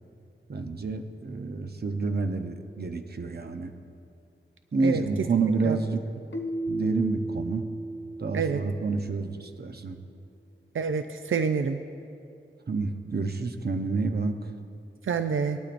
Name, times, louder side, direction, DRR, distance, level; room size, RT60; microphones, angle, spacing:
voice 1, 0.5-3.7 4.7-6.0 6.7-7.6 8.2-10.0 12.7-14.5, right 4 dB, 55° right, 6 dB, 0.8 m, -29 dB
Keyboard (musical), 6.3-9.2, right 1 dB, 65° left, 1.0 m, -34 dB
voice 2, 10.7-11.8 15.1-15.6, right 6 dB, 85° right, 7 dB, 0.4 m, -27 dB
19.0 x 12.0 x 2.5 m, 2.5 s
wide cardioid pair, 70°, 20 cm